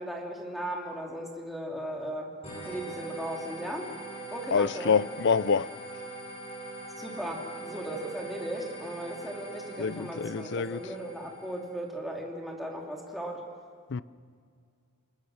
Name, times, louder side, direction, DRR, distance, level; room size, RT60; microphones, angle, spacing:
voice 1, 0.0-2.3 2.6-3.9 4.3-5.0 7.0-13.4, right 1 dB, ahead, 2.8 m, -37 dB
sound 1, 2.4-11.8, right 2 dB, 30° left, 6.4 m, -42 dB
voice 2, 4.5-5.7 9.8-10.8 13.9-14.0, left 6 dB, 55° left, 0.5 m, -26 dB
28.5 x 20.0 x 6.4 m
head